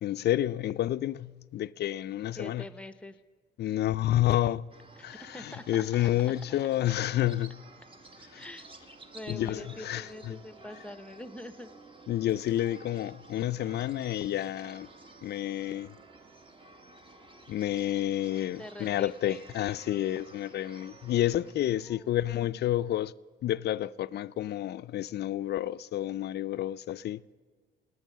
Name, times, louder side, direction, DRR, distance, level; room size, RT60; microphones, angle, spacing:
voice 1, 0.0-2.6 3.6-4.7 5.0-5.2 5.4-7.5 8.3-8.4 9.3-10.4 12.1-14.9 15.2-15.9 17.5-23.1 23.4-27.2, left 13 dB, 55° left, 0.4 m, -29 dB
voice 2, 2.4-3.2 5.0-5.8 6.5-6.9 8.3-11.7 18.6-19.5 21.6-22.2, left 1 dB, 5° left, 0.7 m, -45 dB
sound 1, 4.7-21.5, right 2 dB, 25° right, 1.1 m, -52 dB
18.5 x 8.3 x 7.3 m
cardioid pair, 90°, 20 cm